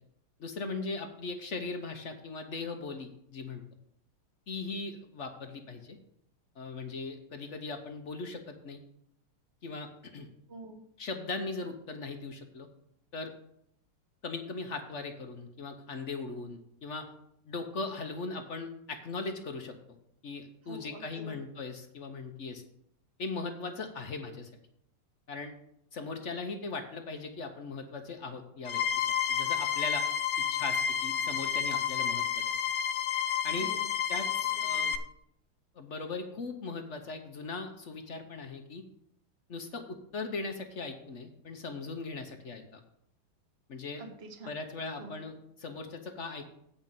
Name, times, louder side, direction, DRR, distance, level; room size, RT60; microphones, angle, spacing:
voice 1, 0.4-3.6 4.5-6.0 6.6-8.8 9.6-10.3 11.0-12.7 13.1-13.3 14.2-17.1 17.5-19.7 20.2-22.6 23.2-24.5 25.3-25.5 25.9-30.1 30.5-32.6 33.4-33.7 34.1-35.0 35.7-38.8 39.5-42.8 43.7-44.0 44.5-46.5, left 3 dB, 55° left, 5 dB, 0.8 m, -39 dB
voice 2, 10.5-10.8 20.7-21.3 33.6-34.2 34.8-34.9 44.0-44.5 45.0-45.2, right 2 dB, 35° right, 5 dB, 1.3 m, -47 dB
sound 1, 28.7-35.0, left 8 dB, 85° left, 0.7 m, -30 dB
8.7 x 5.4 x 7.4 m, 0.74 s
omnidirectional pair, 2.3 m